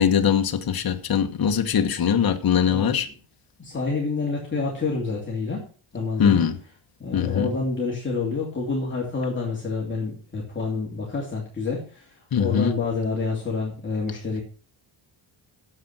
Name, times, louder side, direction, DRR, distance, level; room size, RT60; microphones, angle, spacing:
voice 1, 0.0-3.1 6.2-6.5 7.1-7.5 12.3-12.7, left 7 dB, 45° left, 1.3 m, -21 dB
voice 2, 3.6-5.7 5.9-6.5 7.0-14.4, left 4 dB, 20° left, 3.1 m, -28 dB
9.7 x 7.9 x 6.1 m
wide cardioid pair, 150°, 49 cm